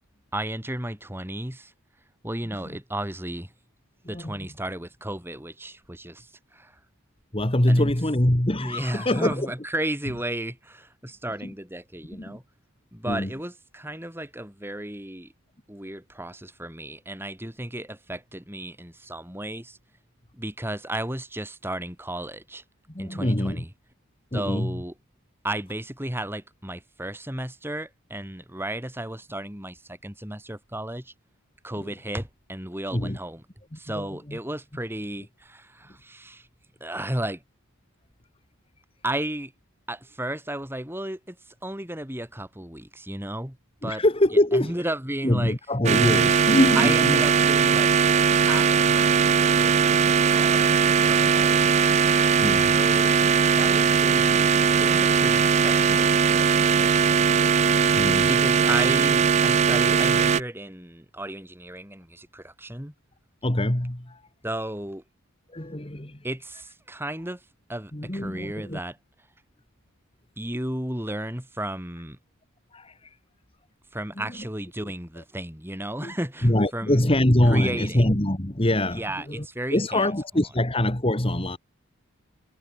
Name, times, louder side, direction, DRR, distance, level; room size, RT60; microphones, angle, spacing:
voice 1, 0.3-1.7 2.2-3.5 4.1-6.8 7.7-7.9 8.6-12.4 12.9-15.3 15.7-19.8 20.3-22.6 23.0-23.7 24.3-24.9 25.4-31.1 31.6-33.4 33.7-36.5 36.8-37.4 39.0-39.5 39.9-43.6 43.8-44.0 44.5-45.6 46.8-51.7 52.7-53.2 58.2-62.9 64.4-65.0 66.2-67.4 67.7-69.0 70.4-72.2 73.9-77.1 77.5-78.0 78.9-80.1, right 1 dB, 10° right, 4.0 m, -34 dB
voice 2, 7.3-9.5 11.4-11.5 12.1-12.4 13.1-13.3 22.9-23.7 24.3-24.8 31.8-31.9 32.9-33.2 33.7-34.4 43.8-44.8 45.2-47.3 49.8-50.0 50.6-50.8 52.4-52.8 58.0-58.3 63.4-64.2 65.5-66.2 67.9-68.8 72.7-73.2 76.0-76.1 76.4-79.5 79.7-81.6, left 1 dB, 25° left, 1.8 m, -24 dB
sound 1, 45.8-60.4, right 6 dB, 30° right, 0.3 m, -20 dB
head